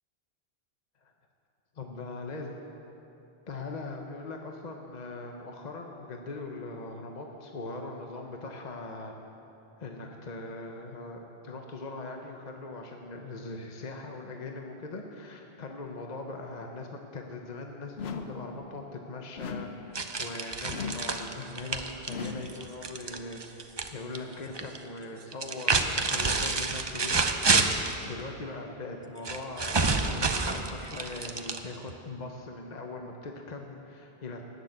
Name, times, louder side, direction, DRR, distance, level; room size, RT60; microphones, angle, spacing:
voice 1, 1.7-2.5 3.5-9.1 9.8-27.5 28.0-34.4, left 3 dB, 45° left, 2 dB, 1.0 m, -41 dB
sound 1, 18.0-18.5 19.4-19.9 20.7-21.2 22.1-22.6, left 5 dB, 80° left, 1.1 m, -38 dB
sound 2, 19.9-23.9 24.1-24.8 25.3-28.0 29.2-31.9, right 3 dB, 30° right, 0.6 m, -28 dB
19.5 x 6.7 x 7.9 m, 3.0 s
omnidirectional pair, 1.1 m